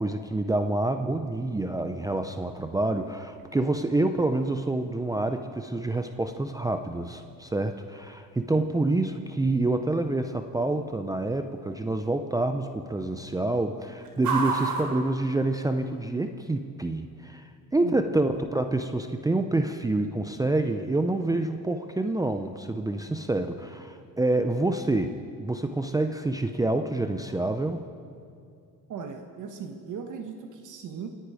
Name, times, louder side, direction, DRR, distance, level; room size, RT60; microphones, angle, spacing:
voice 1, 0.0-25.1 25.4-27.8, right 2 dB, 10° right, 7 dB, 0.6 m, -27 dB
sound 1, 1.2-16.1, right 4 dB, 75° right, 4.0 m, -40 dB
voice 2, 17.8-18.3 28.9-31.1, right 6 dB, 60° right, 5 dB, 1.3 m, -38 dB
28.5 x 9.9 x 4.9 m, 2.4 s
cardioid pair, 120°, 35 cm